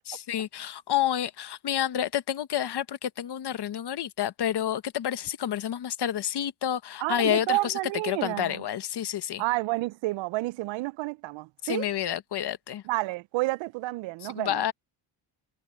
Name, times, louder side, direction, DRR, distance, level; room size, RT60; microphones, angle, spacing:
voice 1, 0.0-7.7 8.0-9.4 11.6-12.8 14.3-14.7, left 10 dB, 65° left, 1.3 m, -29 dB
voice 2, 7.0-8.6 9.4-11.9 12.8-14.7, right 20 dB, 85° right, 0.5 m, -30 dB
cardioid pair, 90°, 44 cm